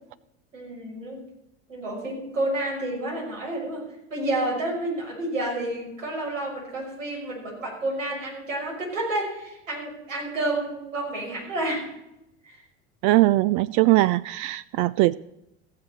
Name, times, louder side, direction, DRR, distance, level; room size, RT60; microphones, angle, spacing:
voice 1, 0.5-1.2 1.7-3.8 4.1-11.9 12.4-12.6, right 1 dB, 90° right, -2 dB, 6.0 m, -30 dB
voice 2, 13.0-15.2, right 18 dB, 55° right, 18 dB, 0.5 m, -20 dB
16.5 x 6.8 x 7.3 m, 0.85 s
hypercardioid pair, 80°, 37 cm